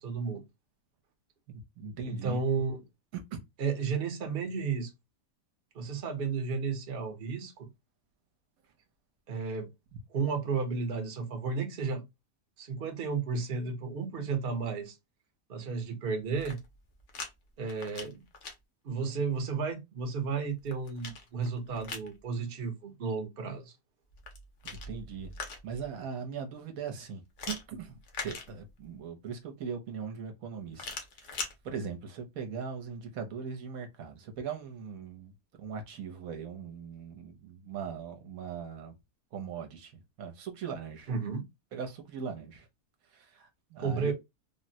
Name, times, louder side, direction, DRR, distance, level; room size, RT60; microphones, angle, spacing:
voice 1, 0.0-0.4 2.0-2.8 3.6-4.9 5.7-7.7 9.3-9.7 10.1-12.0 12.6-15.0 15.5-16.6 17.6-18.2 18.8-23.7 41.1-41.4 43.8-44.1, right 5 dB, 45° right, 0.8 m, -33 dB
voice 2, 1.8-2.4 3.1-3.4 24.6-25.3 25.6-30.9 31.2-35.3 35.6-38.9 39.3-39.9 40.2-41.1 41.7-42.7 43.1-44.1, right 6 dB, 75° right, 1.1 m, -40 dB
sound 1, 16.2-17.3 17.6-18.5 20.3-22.1 24.1-25.9 27.4-29.0 30.7-31.5, left 4 dB, 60° left, 1.0 m, -42 dB
3.5 x 2.0 x 2.6 m
omnidirectional pair, 1.6 m